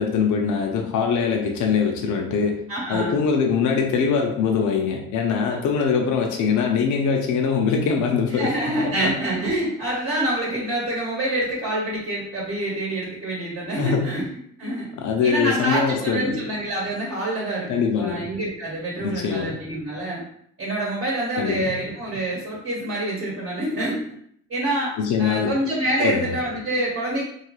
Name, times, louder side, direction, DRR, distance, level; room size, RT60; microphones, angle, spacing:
voice 1, 0.0-2.6 2.9-9.1 13.8-14.1 15.0-16.4 17.7-18.3 19.0-19.6 21.4-21.7 25.0-25.6 26.0-26.3, left 6 dB, 75° left, 1 dB, 0.6 m, -23 dB
voice 2, 2.7-3.2 8.3-14.9 15.2-17.7 18.0-20.2 20.6-24.0 24.5-27.2, right 1 dB, 45° right, -4 dB, 1.1 m, -26 dB
2.6 x 2.4 x 2.9 m, 0.67 s
cardioid pair, 90°, 30 cm